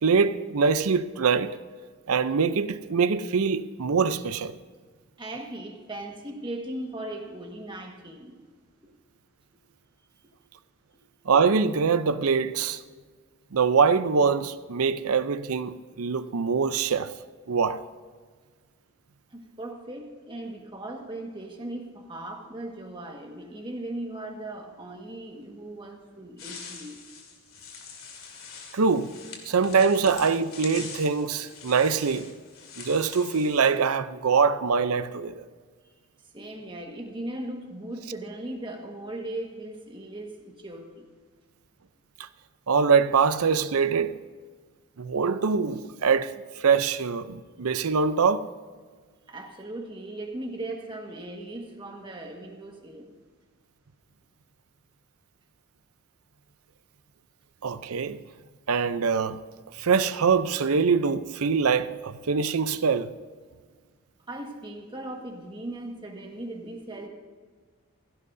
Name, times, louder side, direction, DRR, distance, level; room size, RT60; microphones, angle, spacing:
voice 1, 0.0-1.6 2.1-4.5 11.3-12.8 13.5-17.1 17.5-17.8 28.7-29.1 29.5-32.3 32.8-35.4 42.7-44.1 45.0-46.3 46.6-48.5 57.6-58.2 58.7-59.4 59.8-63.1, right 5 dB, 75° right, 0.6 m, -23 dB
voice 2, 5.2-8.4 19.3-27.0 35.8-35.9 36.3-41.1 49.3-53.1 64.3-67.1, right 1 dB, 20° right, 1.5 m, -38 dB
sound 1, 26.4-33.7, left 5 dB, 65° left, 2.4 m, -44 dB
16.5 x 16.0 x 2.7 m
head